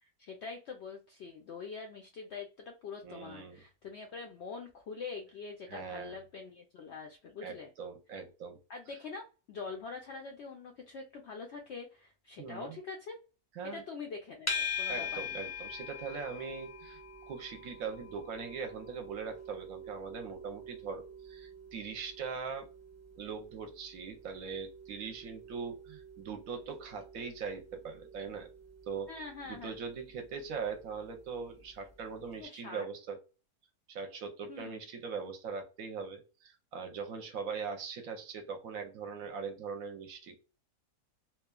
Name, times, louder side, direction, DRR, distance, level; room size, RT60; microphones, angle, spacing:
voice 1, 0.0-7.7 8.7-13.2 13.6-15.4 29.1-29.7 32.4-32.8 34.5-34.8, left 4 dB, 70° left, 3 dB, 0.6 m, -44 dB
voice 2, 3.0-3.6 5.7-6.2 7.4-8.6 12.4-12.8 13.5-13.8 14.9-17.0 17.3-22.7 23.2-28.5 28.9-29.1 29.5-33.2 33.9-40.4, right 5 dB, 70° right, 5 dB, 1.0 m, -41 dB
sound 1, 14.5-31.7, left 4 dB, 25° left, 0.3 m, -44 dB
2.9 x 2.2 x 2.2 m, 0.33 s
omnidirectional pair, 1.6 m